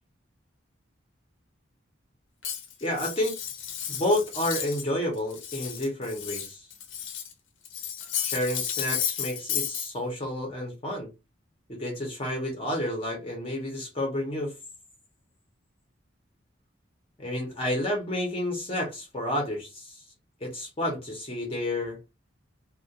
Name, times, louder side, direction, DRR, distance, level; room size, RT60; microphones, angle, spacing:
Cutlery silverware, 2.4-4.9 5.2-7.3 7.6-9.9, left 9 dB, 80° left, 0.6 m, -33 dB
voice 1, 2.8-3.3 3.9-6.7 8.2-11.1 11.7-14.5 17.2-20.0 20.4-22.0, left 1 dB, 30° left, 0.6 m, -30 dB
2.3 x 2.1 x 2.7 m
head